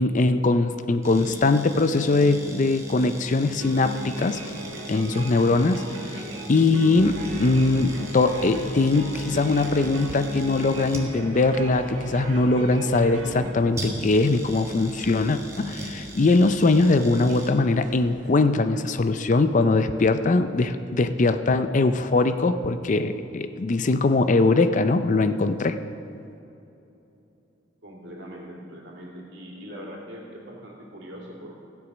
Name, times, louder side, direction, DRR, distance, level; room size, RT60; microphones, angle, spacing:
voice 1, 0.0-4.5 4.9-25.8, left 3 dB, 40° left, 10 dB, 0.5 m, -21 dB
sound 1, 1.0-17.5, right 1 dB, 15° right, 1.4 m, -39 dB
sound 2, 3.6-13.5, equal, 90° right, 1.5 m, -38 dB
sound 3, 6.9-18.5, right 2 dB, 45° right, 1.0 m, -44 dB
voice 2, 27.8-31.5, equal, 65° right, -2 dB, 2.8 m, -41 dB
15.5 x 8.1 x 6.1 m, 2.9 s
head